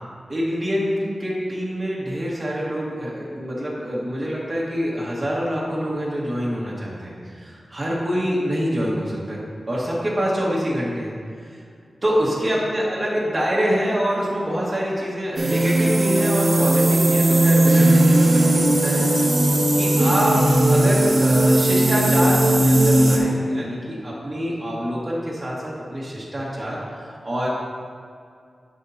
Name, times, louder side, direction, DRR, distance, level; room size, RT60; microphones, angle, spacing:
voice 1, 0.3-9.4 9.7-11.1 12.0-20.3 20.7-27.5, equal, 30° right, -6 dB, 1.9 m, -26 dB
sound 1, 15.4-23.2, right 1 dB, 55° right, 1.2 m, -17 dB
10.0 x 6.4 x 2.9 m, 2.2 s
cardioid pair, 55°, 0 cm